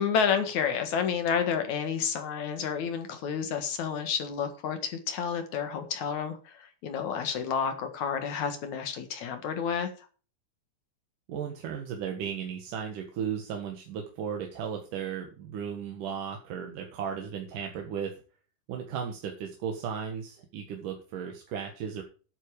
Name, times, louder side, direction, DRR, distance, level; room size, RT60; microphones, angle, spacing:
voice 1, 0.0-9.9, left 7 dB, 55° left, 7 dB, 2.4 m, -30 dB
voice 2, 11.3-18.1 18.7-22.0, right 7 dB, 55° right, 2 dB, 2.7 m, -35 dB
11.5 x 9.0 x 4.9 m, 0.37 s
omnidirectional pair, 5.2 m